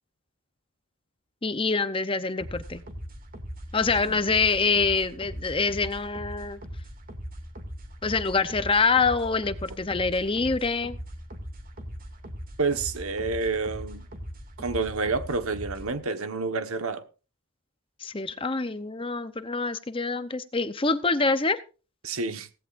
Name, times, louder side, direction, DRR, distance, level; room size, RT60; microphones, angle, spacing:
voice 1, 1.4-2.8 3.7-6.6 8.0-11.0 18.0-21.6, left 4 dB, 25° left, 0.7 m, -25 dB
sound 1, 2.4-16.0, equal, 40° right, 2.4 m, -40 dB
voice 2, 12.6-14.1 14.6-17.0 22.0-22.5, right 4 dB, 75° right, 1.4 m, -29 dB
17.0 x 15.5 x 2.6 m
head